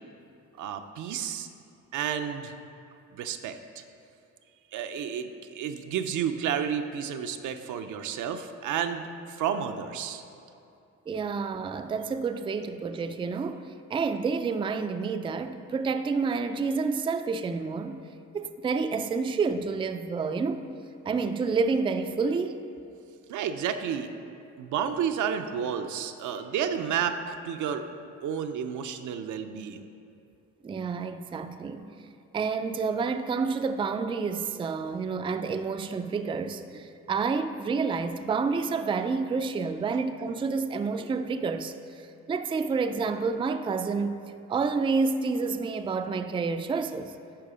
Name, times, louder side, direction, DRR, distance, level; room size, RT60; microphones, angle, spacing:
voice 1, 0.6-1.5 1.9-2.6 3.1-3.8 4.7-10.2 23.3-24.1 24.6-27.9 28.2-29.8 40.8-40.9, right 8 dB, 75° right, 0.6 m, -31 dB
voice 2, 11.1-18.0 18.3-20.6 21.1-22.5 30.6-31.9 32.3-41.7 42.3-44.2 44.5-47.1, right 4 dB, 15° right, 0.3 m, -29 dB
10.5 x 4.1 x 5.1 m
cardioid pair, 90°, 30 cm